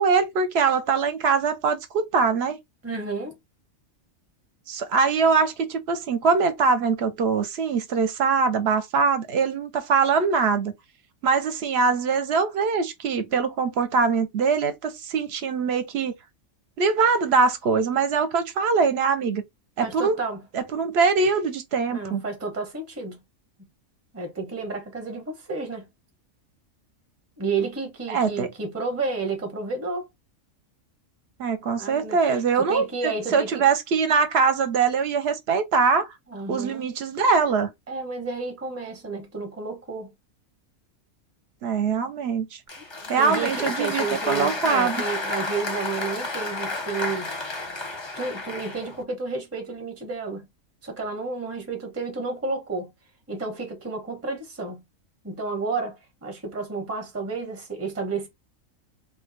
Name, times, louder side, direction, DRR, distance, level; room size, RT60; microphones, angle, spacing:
voice 1, 0.0-2.6 4.7-10.7 11.2-16.1 16.8-19.4 19.8-20.1 20.5-22.2 28.1-28.5 31.4-36.1 36.5-37.7 41.6-42.6 43.1-45.0, right 5 dB, 60° right, 0.8 m, -23 dB
voice 2, 2.8-3.4 19.8-20.4 21.9-23.2 24.1-25.9 27.4-30.1 31.8-33.6 36.3-36.9 37.9-40.1 43.2-47.5 48.1-50.5 50.8-52.9 53.3-54.8 55.2-58.3, right 4 dB, 15° right, 0.7 m, -31 dB
Applause, 42.7-49.0, left 2 dB, 30° left, 0.6 m, -31 dB
2.7 x 2.2 x 3.8 m
omnidirectional pair, 1.4 m